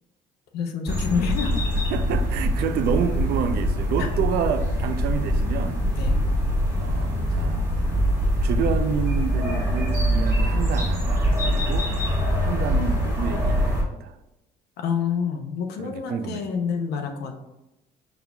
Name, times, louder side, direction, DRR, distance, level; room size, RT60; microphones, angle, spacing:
voice 1, 0.5-1.7 4.0-4.1 5.9-6.2 14.8-17.3, left 6 dB, 75° left, 4 dB, 0.6 m, -28 dB
sound 1, 0.9-13.8, equal, 15° right, 1.6 m, -23 dB
voice 2, 1.9-5.8 6.8-7.7 8.4-11.9 12.4-14.2 15.8-16.4, right 8 dB, 70° right, 11 dB, 0.4 m, -29 dB
5.5 x 4.1 x 2.2 m, 0.94 s
cardioid pair, 110°, 17 cm